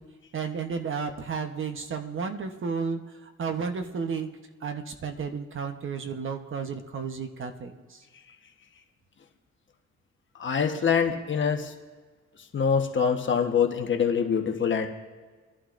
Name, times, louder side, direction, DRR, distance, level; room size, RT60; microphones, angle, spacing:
voice 1, 0.3-3.0 3.4-4.3 4.6-8.0, right 5 dB, 45° right, 6 dB, 1.0 m, -32 dB
voice 2, 10.4-11.7 12.5-14.9, left 6 dB, 40° left, 4 dB, 1.2 m, -24 dB
23.0 x 11.5 x 2.6 m, 1.4 s
cardioid pair, 115°, 29 cm